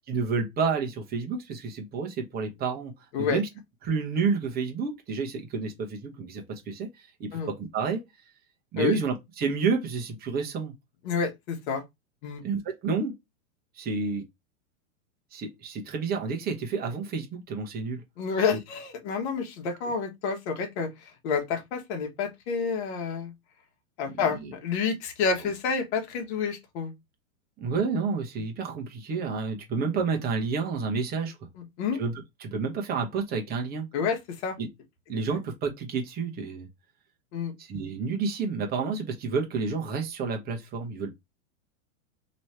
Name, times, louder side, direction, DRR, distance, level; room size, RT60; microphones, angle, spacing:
voice 1, 0.1-2.9 3.2-3.5 3.8-8.0 8.7-10.7 12.4-13.1 13.8-14.2 15.3-18.0 18.5-18.6 24.2-24.5 27.6-31.3 32.0-32.1 32.4-33.9 34.6-34.7 35.1-36.7 37.6-41.1, right 5 dB, 25° right, 1.0 m, -30 dB
voice 2, 11.0-11.8 12.2-12.4 18.2-23.3 24.0-26.9 31.6-32.0 33.9-34.6 37.3-37.5, left 5 dB, 55° left, 1.4 m, -29 dB
3.2 x 3.1 x 4.2 m
hypercardioid pair, 135°, 41 cm